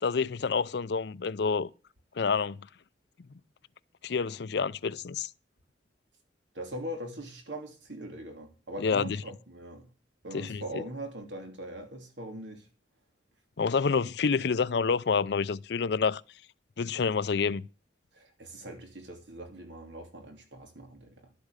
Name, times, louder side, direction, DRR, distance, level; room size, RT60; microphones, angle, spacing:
voice 1, 0.0-1.7 2.2-2.6 4.0-5.3 8.8-9.2 10.3-10.8 13.6-16.2 16.8-17.6, left 5 dB, 65° left, 0.5 m, -28 dB
voice 2, 6.5-9.9 10.2-12.7 18.1-21.3, right 1 dB, 85° right, 3.0 m, -41 dB
11.5 x 8.4 x 6.6 m
head